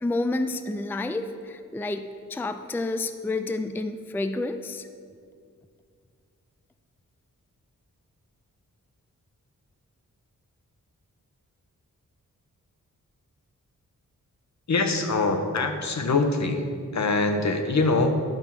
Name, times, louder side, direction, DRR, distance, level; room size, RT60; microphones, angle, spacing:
voice 1, 0.0-4.9, left 2 dB, 5° left, 9 dB, 0.4 m, -29 dB
voice 2, 14.7-16.7 16.9-18.2, left 3 dB, 60° left, 6 dB, 1.0 m, -23 dB
11.0 x 5.5 x 6.0 m, 2.2 s
wide cardioid pair, 85°, 32 cm